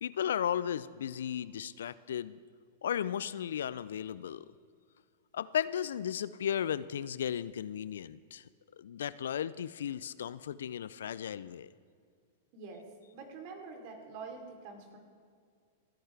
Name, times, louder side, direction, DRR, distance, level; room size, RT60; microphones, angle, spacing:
voice 1, 0.0-2.4 2.8-4.5 5.3-8.4 8.8-11.7, left 9 dB, 70° left, 17 dB, 0.4 m, -35 dB
voice 2, 12.5-12.8 13.1-15.0, right 4 dB, 50° right, 2 dB, 3.4 m, -46 dB
28.5 x 10.0 x 3.4 m, 2.2 s
hypercardioid pair, 100°, 0 cm